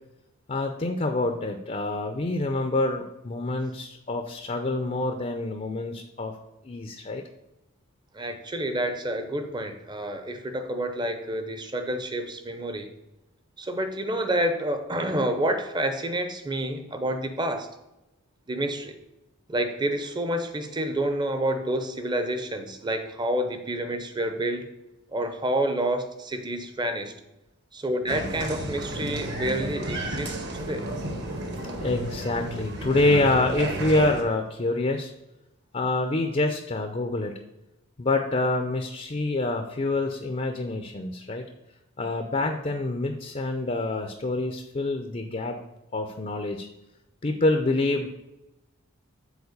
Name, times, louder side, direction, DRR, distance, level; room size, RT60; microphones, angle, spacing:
voice 1, 0.5-6.3 6.7-7.2 31.8-35.1 35.7-37.4 38.0-41.4 42.0-45.6 45.9-46.7 47.2-48.1, left 2 dB, 30° left, 5 dB, 0.5 m, -26 dB
voice 2, 8.1-12.9 13.6-17.7 18.5-18.9 19.5-24.7 25.1-27.1 27.7-30.9, right 1 dB, 20° right, 7 dB, 0.7 m, -28 dB
Applause, 28.1-34.2, right 1 dB, 50° right, 1.1 m, -32 dB
7.1 x 4.3 x 6.5 m, 0.95 s
head